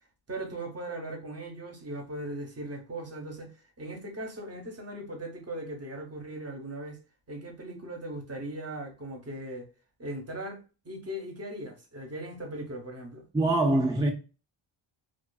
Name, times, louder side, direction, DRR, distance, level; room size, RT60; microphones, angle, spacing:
voice 1, 0.3-7.0 7.3-9.7 10.0-13.3, right 1 dB, 30° right, 0.8 m, -39 dB
voice 2, 13.3-14.1, right 2 dB, 10° right, 0.3 m, -23 dB
2.4 x 2.4 x 2.3 m
wide cardioid pair, 100°, 47 cm